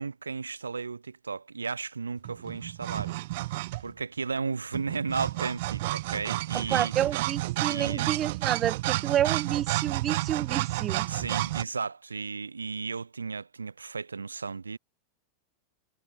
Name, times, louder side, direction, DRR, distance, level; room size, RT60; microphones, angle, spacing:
voice 1, 0.0-3.2 3.4-6.9 7.7-8.1 11.1-14.8, right 4 dB, 75° right, 2.0 m, -34 dB
sound 1, 2.2-4.0 4.7-11.6, right 19 dB, 50° right, 0.4 m, -31 dB
voice 2, 6.5-11.1, right 11 dB, 30° right, 3.0 m, -29 dB
figure-of-eight pair, 90°, 0 cm